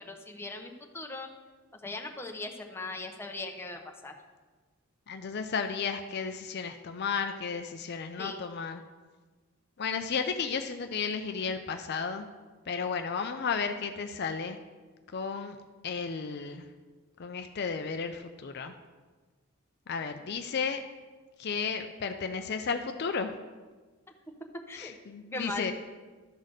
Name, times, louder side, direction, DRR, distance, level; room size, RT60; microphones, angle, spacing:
voice 1, 0.1-1.3 1.7-4.1 8.2-8.4 24.7-24.9 25.3-25.7, left 2 dB, 10° left, 2 dB, 0.8 m, -39 dB
voice 2, 5.1-8.8 9.8-12.3 12.7-14.6 15.1-15.6 15.8-16.7 17.2-18.7 19.9-20.8 21.4-23.3 24.7-25.7, left 5 dB, 50° left, 7 dB, 0.5 m, -33 dB
12.5 x 4.1 x 6.4 m, 1.3 s
head